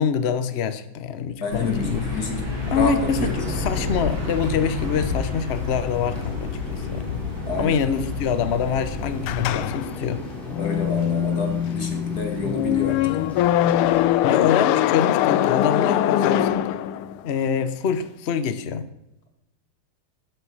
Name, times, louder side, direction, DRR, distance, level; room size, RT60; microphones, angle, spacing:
voice 1, 0.0-2.1 2.7-7.2 7.6-10.2 14.2-16.7 17.2-18.9, left 7 dB, 65° left, 11 dB, 0.6 m, -25 dB
voice 2, 1.4-2.5 2.8-3.6 7.4-7.8 10.6-13.2, left 2 dB, 45° left, 4 dB, 2.8 m, -29 dB
sound 1, 1.5-9.7, left 3 dB, 65° right, 3.8 m, -29 dB
sound 2, 3.2-14.0, equal, ahead, 4.4 m, -38 dB
sound 3, 9.2-17.3, left 12 dB, 85° left, 1.5 m, -22 dB
12.0 x 9.9 x 6.4 m, 0.88 s
omnidirectional pair, 2.3 m